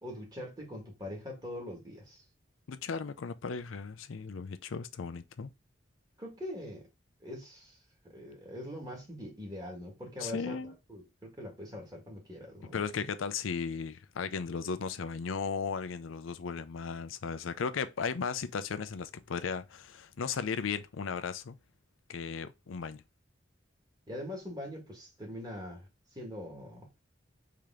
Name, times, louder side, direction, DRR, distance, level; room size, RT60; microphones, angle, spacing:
voice 1, 0.0-2.2 6.2-6.9 7.2-7.8 8.0-12.8 24.1-25.9 26.1-26.9, left 1 dB, 20° right, 1.7 m, -43 dB
voice 2, 2.7-5.5 10.2-10.7 12.7-21.6 22.1-23.0, left 5 dB, 90° left, 0.5 m, -36 dB
4.9 x 2.9 x 3.6 m
head